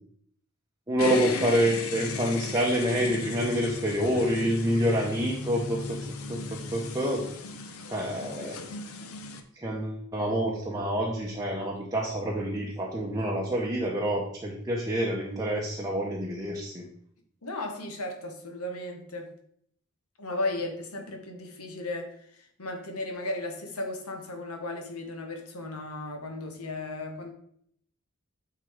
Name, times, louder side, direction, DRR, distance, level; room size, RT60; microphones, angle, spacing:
voice 1, 0.9-6.0 6.3-7.3 7.9-8.6 9.6-16.8, equal, 15° right, -2 dB, 0.8 m, -27 dB
sound 1, 1.0-9.4, left 3 dB, 70° left, 0.7 m, -37 dB
voice 2, 17.4-19.3 20.2-22.1 22.6-27.3, left 2 dB, 90° left, 4 dB, 1.3 m, -35 dB
8.9 x 3.7 x 3.6 m, 0.67 s
head